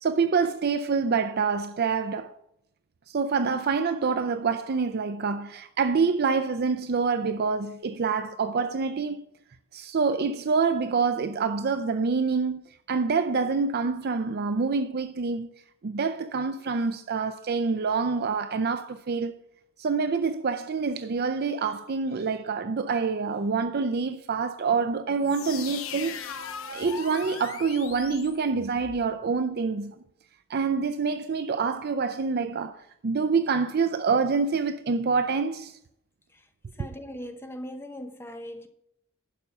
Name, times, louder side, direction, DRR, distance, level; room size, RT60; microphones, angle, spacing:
voice 1, 0.0-2.3 3.1-9.2 9.7-12.6 12.9-15.5 15.8-19.3 19.8-26.2 26.7-30.0 30.5-35.8, right 5 dB, 50° right, 0.5 m, -26 dB
sound 1, 25.2-29.0, left 7 dB, 75° left, 0.9 m, -39 dB
voice 2, 36.8-38.7, equal, 10° left, 0.9 m, -39 dB
11.5 x 5.5 x 7.0 m
head